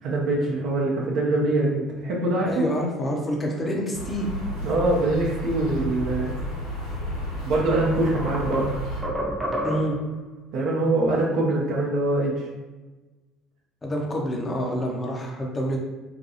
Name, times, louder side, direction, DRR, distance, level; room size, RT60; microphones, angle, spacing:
voice 1, 0.0-2.5 4.6-6.3 7.4-8.7 10.5-12.5, right 2 dB, 55° right, -3 dB, 0.6 m, -23 dB
voice 2, 2.5-4.3 9.6-10.0 13.8-15.8, equal, 25° left, -1 dB, 0.8 m, -27 dB
sound 1, 3.9-9.0, equal, 75° left, 0.9 m, -32 dB
sound 2, 6.9-7.1 7.5-10.1, equal, 10° right, 0.7 m, -31 dB
4.0 x 2.3 x 2.9 m, 1.2 s
figure-of-eight pair, 60°, 0 cm